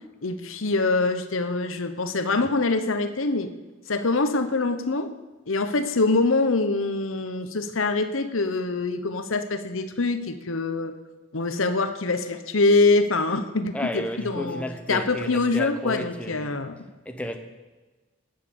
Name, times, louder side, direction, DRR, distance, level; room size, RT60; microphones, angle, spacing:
voice 1, 0.2-3.5 3.9-5.1 5.5-11.0 11.3-14.6 14.9-16.8, left 3 dB, 75° left, 1.0 m, -24 dB
voice 2, 13.7-16.6 17.0-17.4, left 1 dB, 5° left, 1.0 m, -32 dB
18.5 x 7.6 x 6.9 m
head